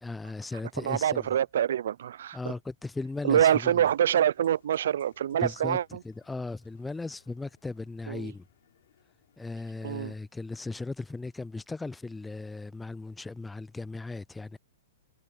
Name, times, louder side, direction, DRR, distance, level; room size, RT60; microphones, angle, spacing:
voice 1, 0.0-1.3 2.3-3.8 5.4-5.8 6.0-8.4 9.4-14.6, left 3 dB, 5° left, 0.4 m, -37 dB
voice 2, 0.8-2.5 3.2-6.0 8.1-8.3 9.8-10.1, right 10 dB, 70° right, 0.5 m, -26 dB
sound 1, 2.9-10.2, left 11 dB, 65° left, 7.3 m, -66 dB
hypercardioid pair, 130°, 0 cm